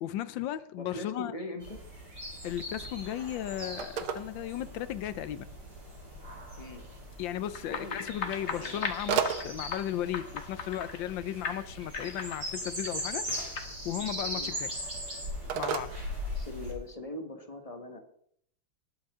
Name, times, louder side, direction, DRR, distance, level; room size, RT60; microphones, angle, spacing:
voice 1, 0.0-1.3 2.4-5.5 7.2-13.3 13.8-14.7 15.5-15.9, left 11 dB, 75° left, 1.3 m, -35 dB
voice 2, 0.8-1.8 6.5-6.8 7.7-8.9 14.3-14.5 16.3-18.0, left 1 dB, 20° left, 1.3 m, -41 dB
sound 1, 1.6-16.7, equal, 50° right, 4.9 m, -40 dB
Telephone, 2.4-16.9, right 7 dB, 85° right, 1.8 m, -40 dB
sound 2, 7.5-11.2 11.4-13.6, left 5 dB, 40° left, 1.3 m, -38 dB
20.0 x 7.2 x 3.6 m
omnidirectional pair, 2.2 m